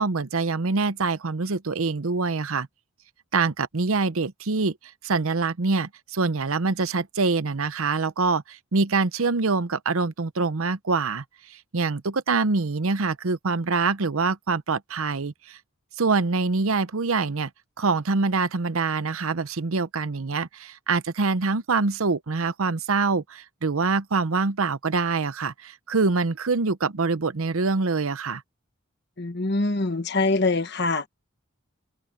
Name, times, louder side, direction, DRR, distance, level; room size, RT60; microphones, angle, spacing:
voice 1, 0.0-2.7 3.3-4.8 5.0-11.2 11.5-15.6 16.0-17.5 17.8-28.4, right 4 dB, 80° right, 0.8 m, -25 dB
voice 2, 29.2-31.1, left 3 dB, 50° left, 1.3 m, -24 dB
head